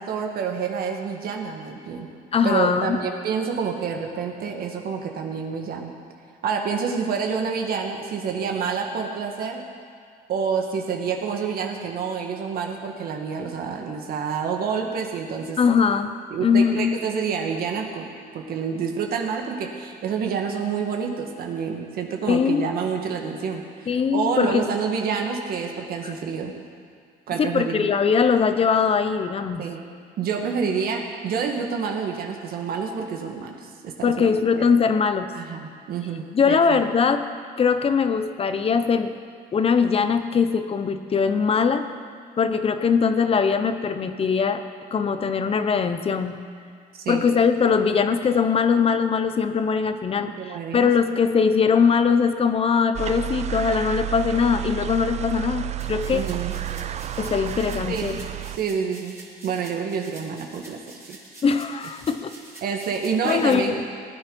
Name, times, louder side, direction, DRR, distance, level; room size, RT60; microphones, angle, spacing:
voice 1, 0.0-2.1 2.4-5.9 6.4-9.6 10.3-15.6 16.3-18.1 18.3-26.5 27.3-27.9 29.6-29.8 30.2-34.3 34.6-34.7 35.3-36.8 47.0-47.3 50.2-50.9 56.1-56.5 57.9-58.2 58.6-59.2 59.4-60.8 61.1-61.2 62.6-63.8, right 6 dB, 65° right, 2 dB, 1.6 m, -28 dB
voice 2, 2.3-3.0 15.6-16.1 16.4-16.9 22.3-22.7 23.9-24.7 26.0-26.1 27.4-29.6 34.0-35.3 36.3-37.2 37.6-39.2 39.5-41.9 42.4-44.6 44.9-46.4 47.1-56.2 57.2-58.2 61.4-62.3 63.2-63.7, left 6 dB, 35° left, 9 dB, 0.9 m, -21 dB
sound 1, 52.9-58.6, right 12 dB, 40° right, 0.5 m, -31 dB
sound 2, 55.8-63.5, right 2 dB, 15° right, 2.9 m, -46 dB
19.0 x 9.8 x 5.4 m, 2.2 s
cardioid pair, 110°, 17 cm